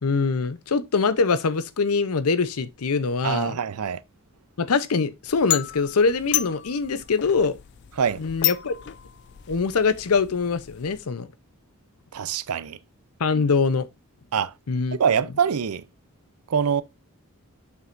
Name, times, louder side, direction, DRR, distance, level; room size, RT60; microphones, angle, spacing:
voice 1, 0.0-3.6 4.6-7.6 8.2-8.7 9.5-11.3 13.2-13.9 14.7-15.0, left 4 dB, 85° left, 0.6 m, -23 dB
voice 2, 3.2-4.0 8.0-8.2 12.1-12.8 14.3-14.5 14.9-15.8 16.5-16.8, right 7 dB, 85° right, 0.5 m, -24 dB
sound 1, 5.3-11.0, left 14 dB, 50° left, 0.4 m, -32 dB
7.6 x 5.8 x 2.5 m
head